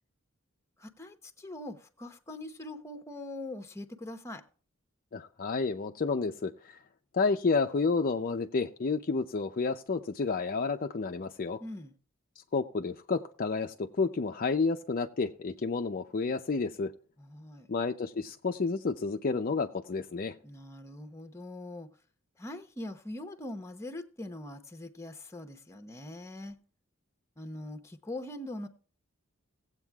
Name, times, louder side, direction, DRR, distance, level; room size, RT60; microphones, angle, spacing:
voice 1, 0.8-4.4 11.6-11.9 17.2-17.7 20.4-21.9 22.4-26.6 27.4-28.7, left 1 dB, 15° left, 1.0 m, -42 dB
voice 2, 5.1-6.8 7.1-11.6 12.5-16.9 17.7-20.4, left 4 dB, 45° left, 0.5 m, -30 dB
18.0 x 8.2 x 2.3 m
head